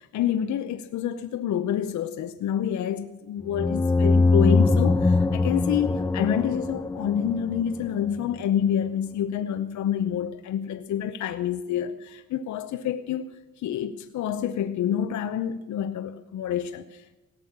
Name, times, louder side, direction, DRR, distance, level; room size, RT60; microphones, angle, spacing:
voice 1, 0.0-13.3 13.6-17.2, left 9 dB, 70° left, 0.8 m, -28 dB
sound 1, 3.5-8.1, left 3 dB, 10° left, 0.4 m, -22 dB
17.5 x 6.4 x 8.5 m
cardioid pair, 90°, 30 cm